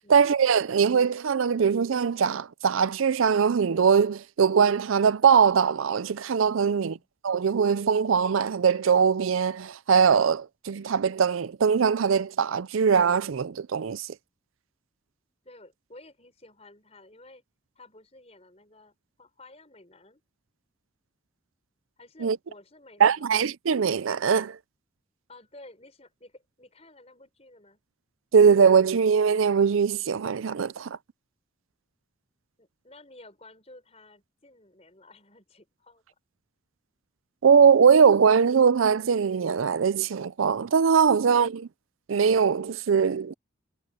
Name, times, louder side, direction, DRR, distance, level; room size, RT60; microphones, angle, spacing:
voice 1, 0.1-6.9 7.2-14.1 22.2-22.4 23.0-24.6 28.3-31.0 37.4-41.7 42.1-43.3, right 6 dB, 80° right, 0.5 m, -21 dB
voice 2, 6.6-7.1 15.4-17.4 17.8-18.9 19.2-20.2 22.0-23.4 25.3-27.8 32.6-36.0, left 2 dB, 30° left, 5.6 m, -52 dB
head